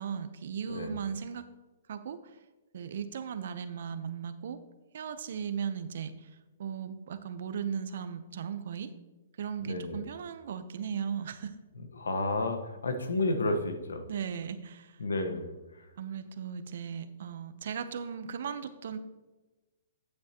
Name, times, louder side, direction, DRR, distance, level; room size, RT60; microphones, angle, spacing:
voice 1, 0.0-1.5 1.9-2.4 2.7-4.6 4.9-6.3 6.6-8.9 9.4-11.5 14.1-15.0 16.0-19.0, right 7 dB, 65° right, 11 dB, 0.8 m, -37 dB
voice 2, 9.6-10.0 12.0-14.0 15.0-15.5, left 2 dB, 90° left, 7 dB, 1.2 m, -31 dB
9.8 x 8.3 x 2.9 m, 1.1 s
hypercardioid pair, 140°, 0 cm